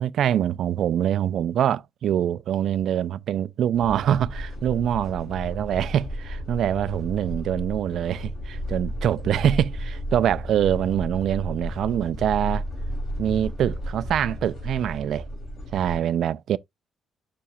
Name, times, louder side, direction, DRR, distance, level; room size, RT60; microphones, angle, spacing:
voice 1, 0.0-12.6 13.2-15.3 15.7-16.6, right 10 dB, 70° right, 0.4 m, -24 dB
sound 1, 3.7-16.0, equal, 60° left, 3.0 m, -33 dB
7.0 x 6.0 x 2.3 m
cardioid pair, 90°, 0 cm